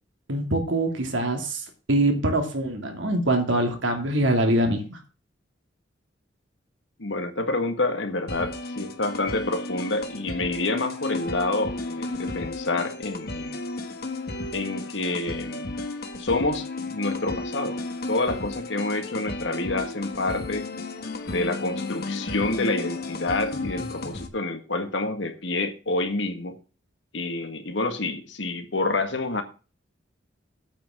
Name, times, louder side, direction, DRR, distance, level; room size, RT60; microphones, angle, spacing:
voice 1, 0.3-5.0, right 1 dB, 80° right, 3 dB, 2.8 m, -24 dB
voice 2, 7.0-13.6 14.5-15.8 16.2-17.8 18.1-20.7 21.2-26.6 27.1-29.4, left 2 dB, 70° left, 7 dB, 1.7 m, -28 dB
sound 1, 8.3-24.3, left 2 dB, 50° left, 1.5 m, -33 dB
8.6 x 6.0 x 7.5 m, 0.34 s
head